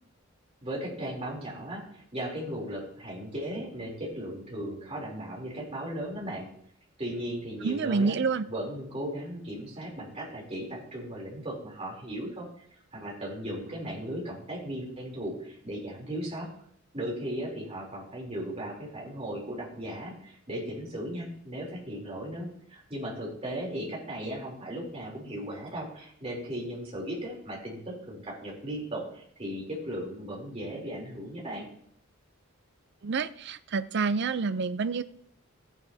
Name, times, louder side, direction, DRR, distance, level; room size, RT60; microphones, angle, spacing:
voice 1, 0.6-6.5 7.0-8.1 8.5-16.5 16.9-31.7, right 1 dB, 30° right, -3 dB, 3.3 m, -37 dB
voice 2, 7.6-8.5 33.0-35.0, right 4 dB, 50° right, 13 dB, 0.5 m, -28 dB
14.5 x 9.1 x 2.8 m, 0.66 s
head